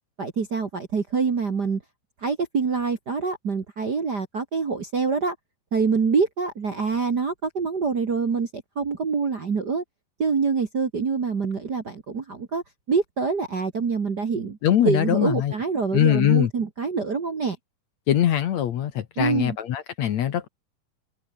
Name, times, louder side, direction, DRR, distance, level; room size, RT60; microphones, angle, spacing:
voice 1, 0.2-1.8 2.2-5.4 5.7-9.8 10.2-14.6 14.8-17.6 19.2-19.6, right 5 dB, 40° right, 1.7 m, -25 dB
voice 2, 14.6-15.5 15.9-16.5 18.1-20.5, left 11 dB, 60° left, 2.2 m, -22 dB
omnidirectional pair, 4.0 m